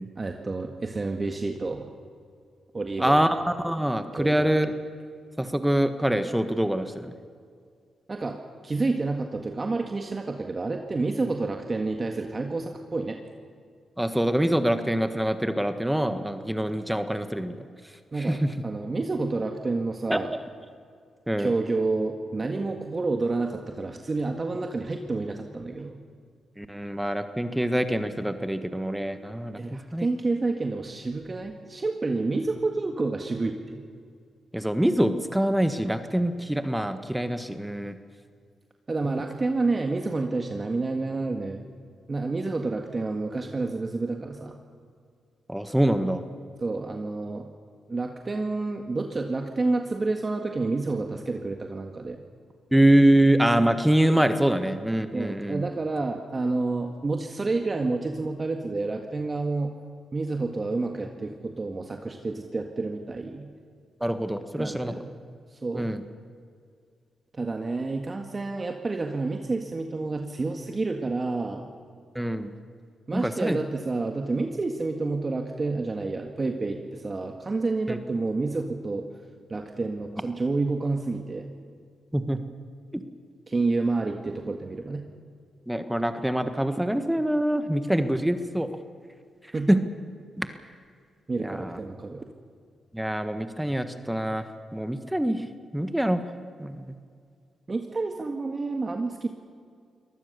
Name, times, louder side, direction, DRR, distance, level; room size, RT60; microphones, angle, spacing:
voice 1, 0.2-1.8 2.7-3.3 4.2-4.5 8.1-8.4 8.6-13.2 18.1-20.3 21.4-26.0 29.6-33.8 38.9-41.6 42.1-44.6 46.6-47.5 47.9-52.2 55.1-59.7 60.1-63.5 64.6-65.1 65.5-65.9 67.3-71.7 73.1-79.0 79.5-81.5 83.5-85.0 89.5-89.7 91.3-92.2 97.7-99.3, right 3 dB, 35° right, 4 dB, 1.8 m, -29 dB
voice 2, 3.0-4.7 5.4-7.1 14.0-17.5 18.2-18.5 20.1-20.2 21.3-21.5 26.6-30.1 34.5-38.0 39.0-39.2 45.5-46.2 52.7-55.6 64.0-64.9 65.7-66.0 72.1-72.5 73.1-73.6 77.9-78.0 82.1-82.4 82.9-83.0 85.7-88.7 89.7-89.8 90.4-90.5 91.4-91.8 92.9-94.5 94.7-95.4 95.7-96.2 96.6-96.9, right 1 dB, 5° right, 9 dB, 1.5 m, -25 dB
23.0 x 19.0 x 6.9 m, 2.2 s
supercardioid pair, 55°, 0 cm